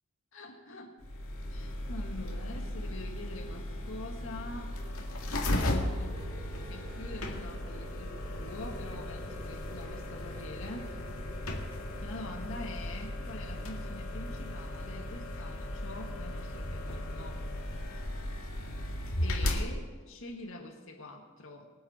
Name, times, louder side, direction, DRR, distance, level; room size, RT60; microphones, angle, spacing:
voice 1, 0.3-1.0 1.5-4.8 5.5-6.2 6.7-11.0 12.0-17.4 19.2-21.7, left 2 dB, 65° left, 2 dB, 1.9 m, -45 dB
sound 1, 1.0-19.6, left 1 dB, 80° left, 2.0 m, -36 dB
sound 2, 5.9-15.3, equal, 30° right, 2.7 m, -52 dB
23.5 x 8.7 x 4.4 m, 1.4 s
head